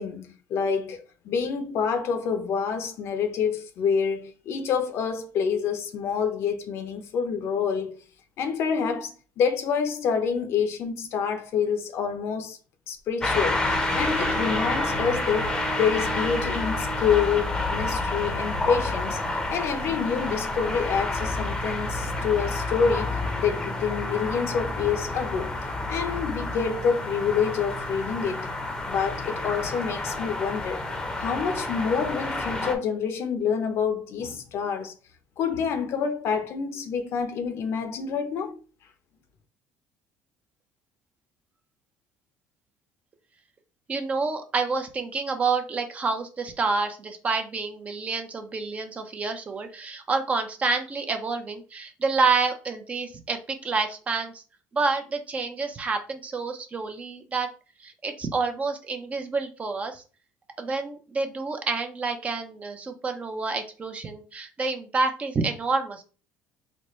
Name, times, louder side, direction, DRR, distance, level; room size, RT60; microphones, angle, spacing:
voice 1, 0.0-8.0 8.4-12.6 12.9-19.2 19.5-25.5 25.9-28.5 28.9-30.8 31.2-34.9 35.4-38.6, left 6 dB, 60° left, 0.7 m, -27 dB
sound 1, 13.2-32.7, left 2 dB, 15° left, 0.7 m, -29 dB
Bowed string instrument, 13.2-18.3, right 2 dB, 85° right, 1.0 m, -37 dB
voice 2, 43.9-54.4 54.7-57.5 57.8-60.0 60.6-66.0, right 4 dB, 25° right, 0.6 m, -28 dB
4.0 x 2.2 x 3.1 m
cardioid pair, 120°, 5 cm